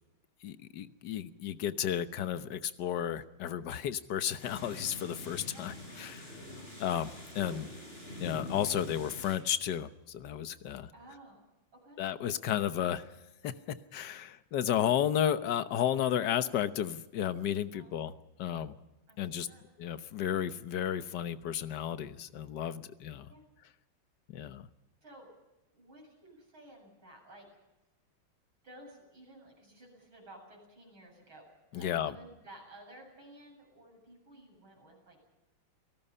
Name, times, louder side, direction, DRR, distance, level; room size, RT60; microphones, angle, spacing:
voice 1, 0.4-6.3 6.8-7.6 8.2-10.9 12.0-13.1 13.4-13.5 13.9-18.1 18.4-18.8 19.2-19.5 19.8-23.3 24.3-24.7 31.7-32.2, left 10 dB, 60° left, 11 dB, 1.5 m, -33 dB
sound 1, 4.4-9.4, left 1 dB, 25° left, 8.2 m, -44 dB
voice 2, 10.9-11.4 11.7-12.0 17.7-17.9 19.1-19.6 23.3-23.4 25.0-25.3 25.7-27.5 28.6-35.2, right 1 dB, 75° right, 1 dB, 8.6 m, -54 dB
29.5 x 18.5 x 5.6 m, 1.0 s
omnidirectional pair, 2.3 m